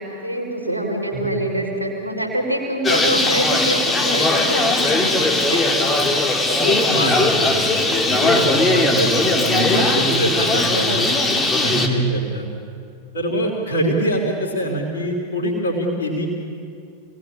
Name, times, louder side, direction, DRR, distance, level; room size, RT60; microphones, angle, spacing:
voice 1, 0.0-5.9 9.5-9.9, right 1 dB, 90° left, 0 dB, 3.8 m, -26 dB
Bird, 2.8-11.9, left 2 dB, 15° left, 2.5 m, -19 dB
voice 2, 6.6-11.1 11.4-12.5 13.1-16.3, right 1 dB, 70° left, 0 dB, 3.8 m, -24 dB
26.0 x 19.0 x 8.6 m, 2.3 s
figure-of-eight pair, 90°, 0 cm